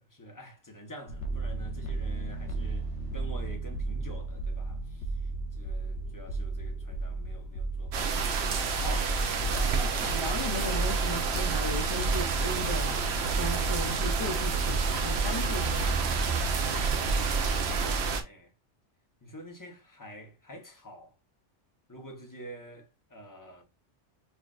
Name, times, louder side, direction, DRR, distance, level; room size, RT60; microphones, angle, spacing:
voice 1, 0.0-8.4 8.8-10.0 17.0-18.5 19.2-21.2 21.9-23.6, equal, 20° left, 0.8 m, -47 dB
sound 1, 1.1-18.0, right 3 dB, 80° left, 1.1 m, -34 dB
sound 2, 7.9-18.2, right 4 dB, 70° right, 0.9 m, -29 dB
voice 2, 9.8-16.0, left 1 dB, 50° left, 0.3 m, -37 dB
5.8 x 2.4 x 2.3 m
omnidirectional pair, 1.2 m